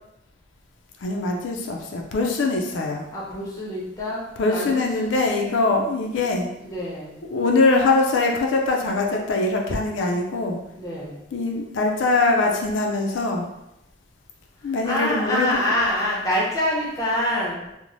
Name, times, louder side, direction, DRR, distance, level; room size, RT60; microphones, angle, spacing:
voice 1, 1.0-3.1 4.4-6.5 7.3-10.6 11.3-13.5 14.6-15.6, left 3 dB, 85° left, 1 dB, 0.4 m, -22 dB
voice 2, 3.1-4.2 4.5-5.1 6.6-7.2 10.8-11.3 14.8-17.6, left 1 dB, 20° left, -5 dB, 0.6 m, -26 dB
3.0 x 2.0 x 2.6 m, 0.89 s
head